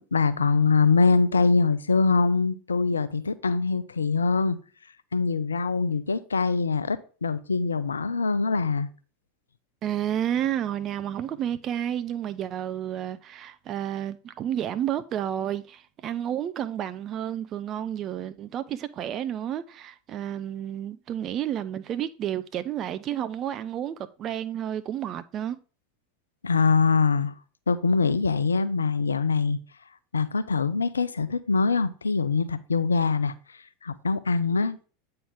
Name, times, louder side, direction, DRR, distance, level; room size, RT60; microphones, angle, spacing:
voice 1, 0.0-4.6 5.1-8.9 26.4-27.3 27.7-29.6 30.1-34.8, left 4 dB, 85° left, 0.4 m, -23 dB
voice 2, 9.8-25.6, right 10 dB, 40° right, 0.4 m, -31 dB
8.5 x 4.4 x 3.5 m
figure-of-eight pair, 85°, 0 cm